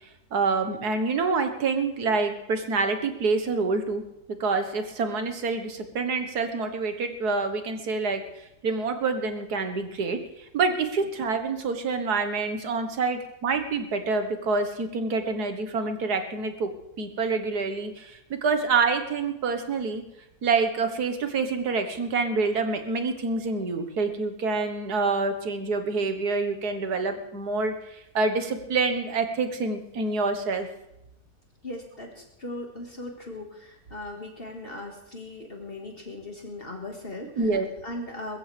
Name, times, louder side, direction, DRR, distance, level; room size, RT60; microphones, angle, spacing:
voice 1, 0.3-4.0 4.3-8.2 8.6-16.7 17.0-20.0 20.4-27.8 28.1-30.7 37.4-37.7, right 4 dB, 90° right, 7 dB, 1.9 m, -27 dB
voice 2, 31.6-37.5 37.8-38.4, left 2 dB, 35° left, 1 dB, 2.1 m, -38 dB
21.5 x 15.0 x 3.4 m, 0.84 s
omnidirectional pair, 1.6 m